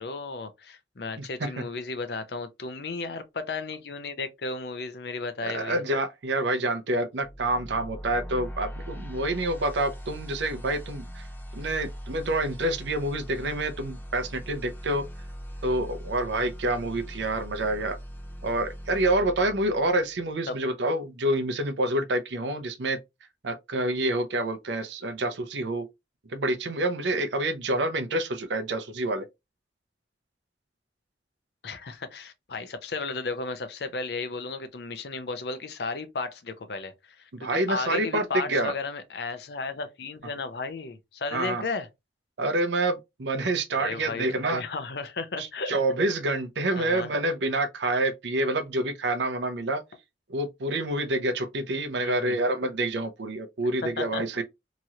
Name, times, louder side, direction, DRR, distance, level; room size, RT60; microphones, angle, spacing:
voice 1, 0.0-5.8 20.5-20.6 31.6-41.9 43.7-45.7 46.8-47.1 52.0-52.4 53.8-54.2, left 4 dB, 65° left, 0.6 m, -34 dB
voice 2, 1.2-1.5 5.4-11.2 11.5-15.0 15.6-18.0 18.4-23.0 23.4-25.8 26.3-29.3 37.3-38.7 41.3-41.6 42.4-44.6 45.4-49.8 50.3-54.4, right 2 dB, 80° right, 0.6 m, -27 dB
sound 1, 7.2-20.2, equal, 10° left, 0.6 m, -40 dB
3.0 x 2.8 x 2.4 m
head